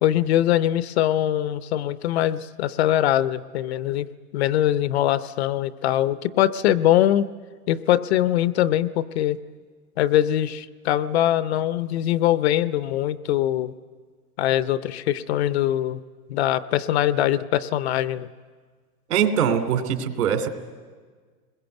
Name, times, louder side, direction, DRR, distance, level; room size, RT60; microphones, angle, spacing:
voice 1, 0.0-4.1 4.3-7.3 7.7-9.4 10.0-13.7 14.4-16.0 16.3-18.3, left 12 dB, 45° left, 15 dB, 0.6 m, -22 dB
voice 2, 19.1-20.5, right 8 dB, 80° right, 7 dB, 2.9 m, -22 dB
29.0 x 21.0 x 8.0 m, 1.6 s
supercardioid pair, 160°, 45 cm